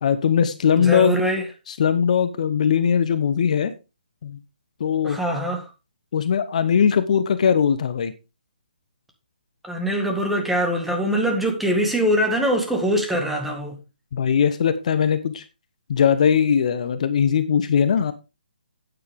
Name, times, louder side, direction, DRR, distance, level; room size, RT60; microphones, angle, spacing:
voice 1, 0.0-1.1 1.7-3.7 4.2-4.4 4.8-5.2 6.1-8.1 14.1-15.4 15.9-18.1, left 7 dB, 50° left, 1.1 m, -20 dB
voice 2, 0.8-1.4 5.0-5.7 9.6-13.8, equal, 5° right, 1.9 m, -23 dB
9.6 x 9.2 x 3.6 m
figure-of-eight pair, 145°, 5 cm